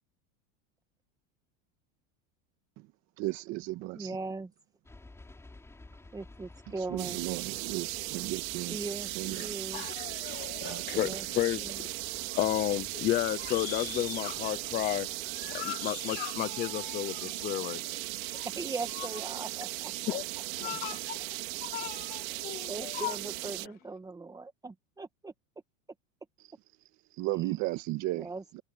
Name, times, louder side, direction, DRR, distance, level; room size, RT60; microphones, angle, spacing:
voice 1, 3.2-4.1 6.9-8.8 9.2-9.5 10.6-11.1 27.2-28.3 28.5-28.6, right 18 dB, 45° right, 1.7 m, -35 dB
voice 2, 3.9-4.5 6.1-7.4 8.7-9.9 10.9-11.8 18.3-20.4 22.2-25.3 27.4-27.5 28.1-28.4, right 3 dB, 10° right, 2.0 m, -40 dB
sound 1, 4.8-15.7, left 2 dB, 5° left, 7.0 m, -55 dB
sound 2, 7.0-23.7, right 19 dB, 80° right, 3.1 m, -37 dB
voice 3, 9.7-11.9 12.3-18.5 20.1-20.2 20.6-21.2 21.6-23.2, left 14 dB, 25° left, 0.6 m, -33 dB
supercardioid pair, 160°, 40 cm